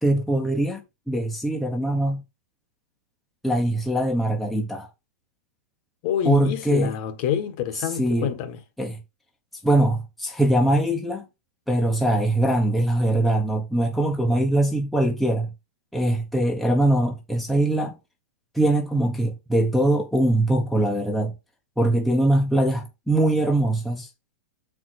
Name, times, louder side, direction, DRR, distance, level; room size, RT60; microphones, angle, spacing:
voice 1, 0.0-2.2 3.4-4.9 6.2-6.9 8.0-8.3 8.8-9.0 9.6-11.3 11.7-15.5 15.9-18.0 18.5-21.3 21.8-24.1, right 1 dB, ahead, 0.9 m, -22 dB
voice 2, 6.0-8.6, left 9 dB, 40° left, 1.2 m, -26 dB
7.3 x 4.7 x 4.2 m
supercardioid pair, 165°, 8 cm